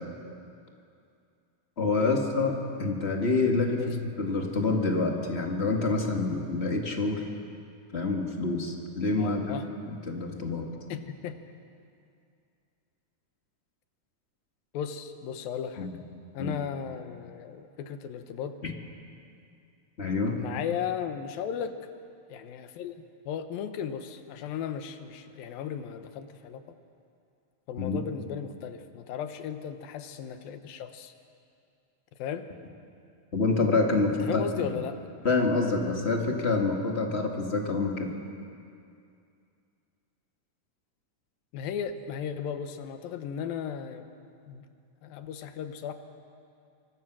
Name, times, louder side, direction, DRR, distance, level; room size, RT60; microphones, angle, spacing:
voice 1, 1.8-7.2 7.9-10.7 15.8-16.0 16.4-16.6 18.6-18.7 20.0-20.4 27.8-28.0 33.3-34.8 35.2-38.1, left 3 dB, 25° left, 1 dB, 1.4 m, -27 dB
voice 2, 9.2-9.6 10.9-11.4 14.7-15.9 16.3-18.6 20.4-21.8 22.3-22.9 23.3-26.6 27.7-31.1 32.2-32.5 34.3-35.0 41.5-44.1 44.5-44.7 45.0-45.9, left 8 dB, 90° left, 8 dB, 2.9 m, -35 dB
25.0 x 24.0 x 6.2 m, 2.5 s
omnidirectional pair, 4.0 m